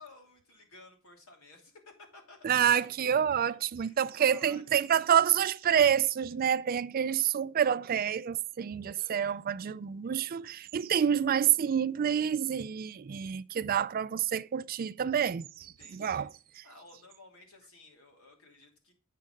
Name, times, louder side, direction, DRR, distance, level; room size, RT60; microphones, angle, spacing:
voice 1, 0.0-2.5 2.8-2.9 3.8-5.1 8.9-9.4 15.6-16.3 16.6-18.9, left 2 dB, 80° left, 3.0 m, -55 dB
voice 2, 2.4-16.3, right 8 dB, 45° right, 0.4 m, -28 dB
8.4 x 6.6 x 5.1 m
head